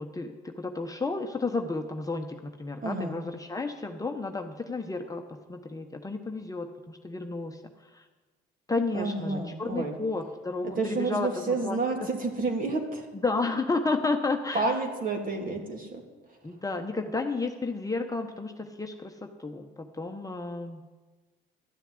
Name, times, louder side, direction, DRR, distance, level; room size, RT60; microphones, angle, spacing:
voice 1, 0.0-8.0 8.7-12.1 13.2-14.7 16.4-20.8, left 3 dB, 15° left, 4 dB, 1.2 m, -32 dB
voice 2, 2.8-3.2 8.9-10.0 10.8-13.1 14.5-16.0, right 3 dB, 40° right, 2 dB, 3.1 m, -30 dB
13.0 x 7.0 x 9.6 m, 1.3 s
supercardioid pair, 75°, 21 cm